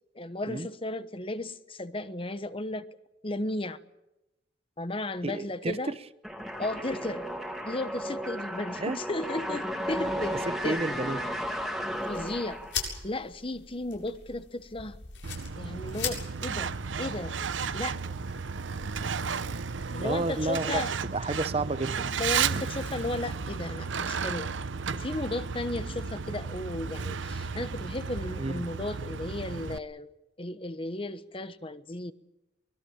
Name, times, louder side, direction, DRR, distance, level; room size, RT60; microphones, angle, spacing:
voice 1, 0.1-2.9 3.2-3.8 4.8-5.9 6.6-7.2 7.7-11.1 12.1-12.6 13.0-15.0 15.6-17.3 17.7-18.0 19.9-20.9 22.1-24.5 24.9-30.1 30.4-32.1, left 2 dB, 30° left, 1.1 m, -35 dB
voice 2, 5.2-6.0 8.8-9.0 10.6-11.2 20.0-22.1 28.4-28.6, right 2 dB, 30° right, 0.7 m, -31 dB
sound 1, 6.2-13.0, equal, ahead, 2.6 m, -34 dB
sound 2, 11.9-19.8, left 6 dB, 80° left, 7.8 m, -41 dB
Truck, 15.2-29.8, right 5 dB, 85° right, 0.8 m, -33 dB
24.0 x 21.5 x 7.4 m
head